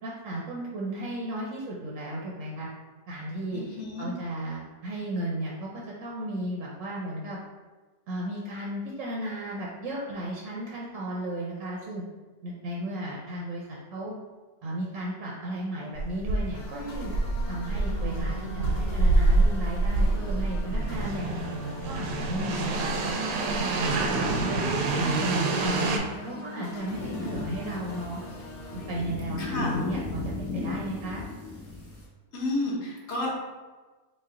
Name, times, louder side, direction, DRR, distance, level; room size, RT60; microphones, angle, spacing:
voice 1, 0.0-2.7 3.1-3.6 4.0-7.4 8.1-12.0 12.4-14.1 14.6-17.1 17.5-21.3 21.8-23.1 23.6-24.6 24.9-25.9 26.2-28.2 28.7-31.2, right 1 dB, 65° right, -3 dB, 0.8 m, -34 dB
voice 2, 3.5-4.1 29.4-29.8 32.3-33.3, left 2 dB, 50° left, -4 dB, 1.1 m, -31 dB
sound 1, 16.0-26.0, right 2 dB, 85° right, 1.2 m, -26 dB
sound 2, 16.5-28.9, equal, 80° left, 1.3 m, -41 dB
sound 3, 26.9-32.1, left 3 dB, 25° left, 1.5 m, -36 dB
4.1 x 2.2 x 3.7 m, 1.2 s
omnidirectional pair, 1.8 m